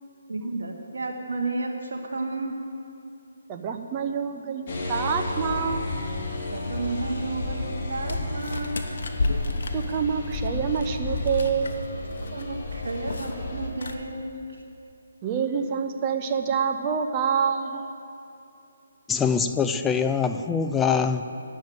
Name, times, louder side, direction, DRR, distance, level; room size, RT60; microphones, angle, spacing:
voice 1, 0.3-2.6 6.5-8.8 12.3-14.4, right 2 dB, 70° right, 0 dB, 1.1 m, -32 dB
voice 2, 3.5-5.8 9.7-11.8 15.2-17.9, right 6 dB, 25° right, 5 dB, 0.7 m, -27 dB
sound 1, 4.7-13.7, left 2 dB, 35° left, 2.4 m, -32 dB
sound 2, 8.1-11.9 12.1-12.4 12.7-13.4 13.7-14.0, left 3 dB, 65° left, 1.0 m, -32 dB
voice 3, 19.1-21.2, left 6 dB, 10° left, 7 dB, 0.3 m, -23 dB
9.0 x 7.3 x 9.1 m, 2.6 s
hypercardioid pair, 155°, 0 cm